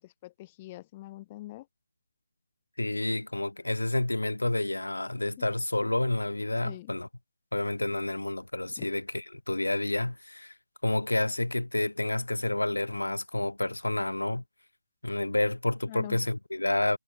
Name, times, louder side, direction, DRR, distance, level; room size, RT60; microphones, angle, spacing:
voice 1, 0.2-1.6 5.4-5.5 6.6-6.9 8.8-8.9 15.9-16.2, left 17 dB, 20° left, 2.6 m, -43 dB
voice 2, 2.8-7.1 7.5-10.5 10.8-14.4 15.0-17.0, left 2 dB, 75° left, 1.5 m, -29 dB
figure-of-eight pair, 150°, 0 cm